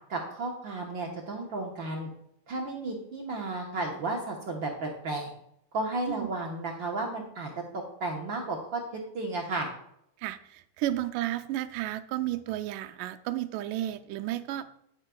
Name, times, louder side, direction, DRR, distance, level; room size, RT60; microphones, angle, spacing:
voice 1, 0.1-2.1 2.5-5.3 5.7-9.7, right 2 dB, 60° right, -1 dB, 1.3 m, -33 dB
voice 2, 10.2-14.7, right 13 dB, 85° right, 9 dB, 2.1 m, -32 dB
9.9 x 8.7 x 2.3 m, 0.73 s
omnidirectional pair, 3.6 m